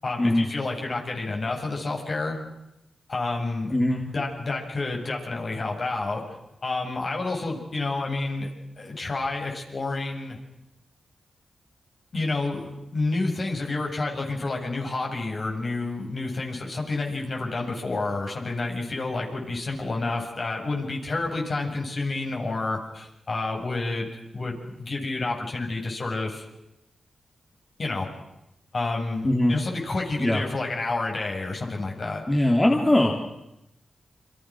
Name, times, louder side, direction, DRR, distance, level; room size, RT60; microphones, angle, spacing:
voice 1, 0.0-2.4 3.1-3.7 4.1-6.2 6.6-8.5 8.8-10.4 12.1-26.5 27.8-28.1 28.7-32.2, left 3 dB, 50° left, 1 dB, 7.9 m, -29 dB
voice 2, 32.3-33.1, left 1 dB, 20° left, 1 dB, 3.4 m, -20 dB
30.0 x 26.0 x 6.4 m, 0.89 s
cardioid pair, 70°, 0 cm